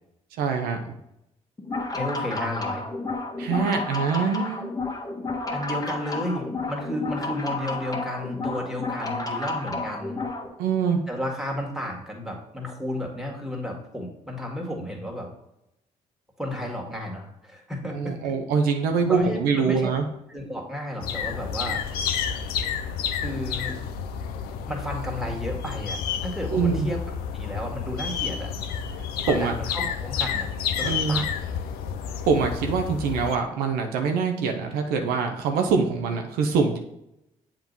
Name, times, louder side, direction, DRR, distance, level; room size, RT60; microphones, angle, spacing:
voice 1, 0.4-0.9 3.4-4.7 10.6-11.0 17.9-20.0 26.5-26.9 29.3-29.5 30.8-31.2 32.3-36.8, right 5 dB, 80° right, 4 dB, 0.7 m, -24 dB
sound 1, 1.6-10.5, left 3 dB, 25° left, 1.2 m, -31 dB
voice 2, 1.9-2.8 5.5-10.2 11.1-15.3 16.4-18.1 19.1-19.9 20.3-21.8 23.2-23.8 24.7-27.0 27.3-28.5 29.2-30.5 30.8-31.3, left 1 dB, 5° right, -1 dB, 1.9 m, -32 dB
sound 2, 21.0-33.4, left 7 dB, 80° left, 0.5 m, -30 dB
7.4 x 2.9 x 5.3 m, 0.83 s
hypercardioid pair, 50°, 16 cm